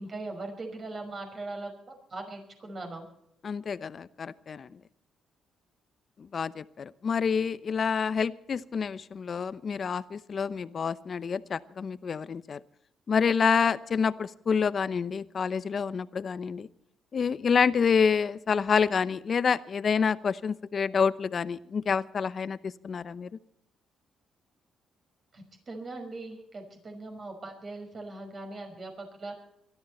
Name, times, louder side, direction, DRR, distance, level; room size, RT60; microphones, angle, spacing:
voice 1, 0.0-3.1 25.3-29.4, right 2 dB, 40° right, 4 dB, 5.5 m, -40 dB
voice 2, 3.4-4.8 6.2-12.6 13.1-16.7 17.1-23.3, left 6 dB, 45° left, 16 dB, 0.8 m, -28 dB
23.0 x 13.0 x 4.3 m, 0.78 s
cardioid pair, 90°, 0 cm